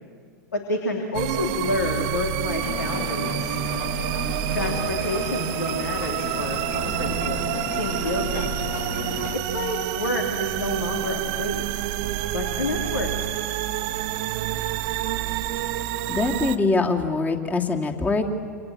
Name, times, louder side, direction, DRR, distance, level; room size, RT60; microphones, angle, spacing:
voice 1, 0.5-3.6 4.5-8.4 9.3-11.9 12.3-13.1, left 2 dB, 75° left, 2 dB, 3.2 m, -29 dB
sound 1, 1.1-16.6, right 13 dB, 45° right, 1.2 m, -28 dB
sound 2, 2.6-9.4, left 7 dB, 50° left, 2.1 m, -34 dB
voice 2, 16.1-18.3, left 3 dB, 15° left, 2 dB, 2.7 m, -23 dB
28.5 x 27.0 x 7.7 m, 2.1 s
figure-of-eight pair, 95°, 10 cm